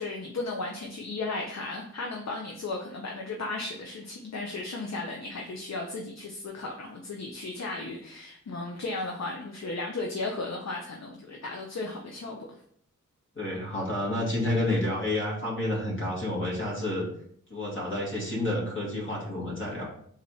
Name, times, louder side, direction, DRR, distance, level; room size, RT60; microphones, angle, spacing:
voice 1, 0.0-12.4, left 3 dB, 60° left, 1 dB, 0.7 m, -35 dB
voice 2, 13.4-17.1 17.5-19.9, left 1 dB, 40° left, -4 dB, 2.0 m, -29 dB
4.0 x 2.8 x 4.7 m, 0.64 s
wide cardioid pair, 85°, 31 cm